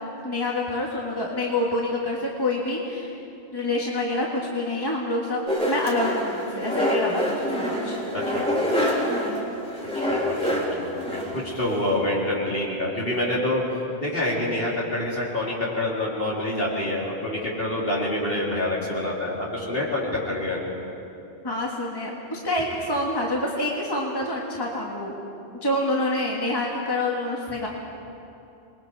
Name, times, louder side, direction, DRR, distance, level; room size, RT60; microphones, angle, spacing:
voice 1, 0.2-3.1 3.5-8.0 21.4-25.2 25.6-27.7, left 1 dB, 20° left, -2 dB, 1.9 m, -27 dB
sound 1, 5.5-11.9, equal, 5° left, 3.5 m, -26 dB
voice 2, 8.1-8.5 9.9-13.6 14.0-20.7, left 1 dB, 55° left, -5 dB, 4.3 m, -27 dB
27.0 x 21.5 x 4.9 m, 2.8 s
omnidirectional pair, 1.2 m